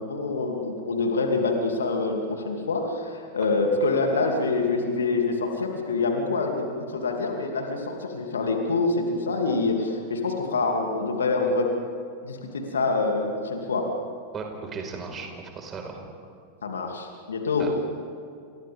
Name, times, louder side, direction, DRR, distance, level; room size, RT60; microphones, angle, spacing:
voice 1, 0.0-11.7 12.2-13.9 16.6-17.7, left 3 dB, 70° left, 2 dB, 2.9 m, -26 dB
voice 2, 14.3-16.0 17.6-17.7, right 5 dB, 25° right, 2 dB, 5.0 m, -36 dB
29.5 x 28.5 x 3.7 m, 2.4 s
figure-of-eight pair, 90°, 0 cm